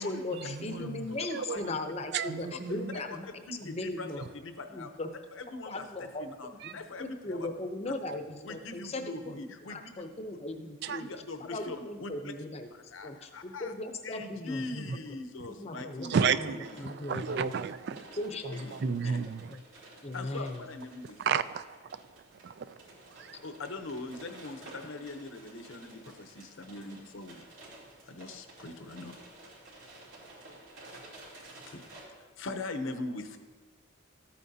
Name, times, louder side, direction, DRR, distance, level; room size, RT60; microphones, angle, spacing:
voice 1, 0.0-3.3 3.6-4.2 4.7-5.1 5.7-6.2 7.0-9.3 9.7-11.1 11.4-12.7 13.0-15.0 15.6-16.1 16.3-17.5 18.2-19.2 19.5-19.6 20.0-20.6, left 2 dB, 30° left, 0.6 m, -38 dB
voice 2, 0.6-1.0 1.3-1.6 2.1-2.9 6.6-6.7 10.8-11.0 16.1-16.6 16.8-18.0 18.4-19.4 21.2-21.6 22.4-22.7, right 6 dB, 50° right, 0.3 m, -31 dB
voice 3, 3.1-4.9 5.3-7.5 8.4-10.1 11.0-12.3 12.7-13.7 14.0-16.9 17.1-17.2 18.5-19.2 20.1-21.2 23.2-27.5 28.1-29.1 31.7-31.9 32.4-33.4, left 2 dB, 70° left, 0.8 m, -42 dB
sound 1, 16.6-32.0, right 2 dB, 70° right, 2.8 m, -53 dB
13.5 x 8.6 x 2.8 m
head